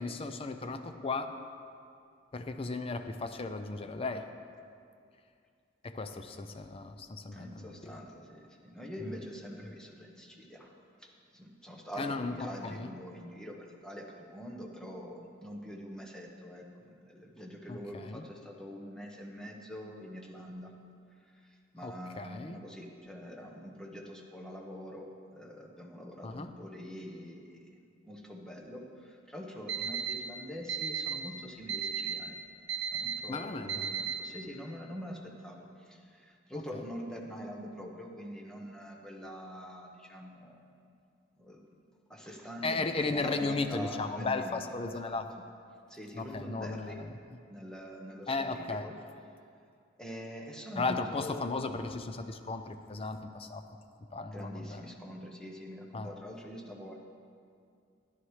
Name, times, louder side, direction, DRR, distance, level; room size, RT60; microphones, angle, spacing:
voice 1, 0.0-1.3 2.3-4.3 5.8-8.0 9.0-9.2 12.0-12.3 12.6-12.9 17.7-18.3 21.8-22.6 26.2-26.5 33.3-33.9 36.7-36.8 42.6-45.3 46.2-47.1 48.3-48.9 50.8-53.6 54.1-54.8 55.9-56.1, left 3 dB, 30° left, 8 dB, 0.5 m, -35 dB
voice 2, 7.3-10.7 11.0-20.7 21.2-25.1 25.4-27.6 28.0-32.4 32.9-40.9 41.4-41.6 42.1-45.4 45.9-47.0 47.5-48.9 50.0-51.6 54.3-57.0, equal, 5° left, -1 dB, 1.0 m, -44 dB
Alarm, 29.7-30.1 30.7-31.1 31.7-32.1 32.7-33.1 33.7-34.1, right 8 dB, 65° right, 1.0 m, -33 dB
13.0 x 11.0 x 3.2 m, 2.4 s
head